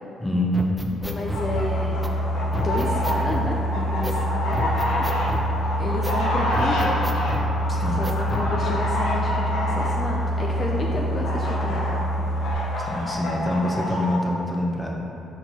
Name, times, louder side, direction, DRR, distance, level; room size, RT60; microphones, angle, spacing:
voice 1, 0.2-0.9 7.7-8.0 12.8-15.0, left 1 dB, 15° left, -1 dB, 0.9 m, -25 dB
sound 1, 0.5-1.5 2.0-2.1 2.5-3.5 4.0-4.2 4.5-5.5 6.0-6.2 6.5-7.5 8.0-8.5, right 1 dB, 5° right, 0.5 m, -31 dB
voice 2, 1.0-2.0 2.5-4.7 5.8-6.9 7.9-11.9, left 2 dB, 40° left, -2 dB, 0.5 m, -30 dB
Boat Water vehicle, 1.0-12.5, equal, 60° right, 1.0 m, -26 dB
sound 2, 1.3-14.2, left 1 dB, 85° left, 0.9 m, -29 dB
5.9 x 4.3 x 4.1 m, 2.8 s
cardioid pair, 90°, 0 cm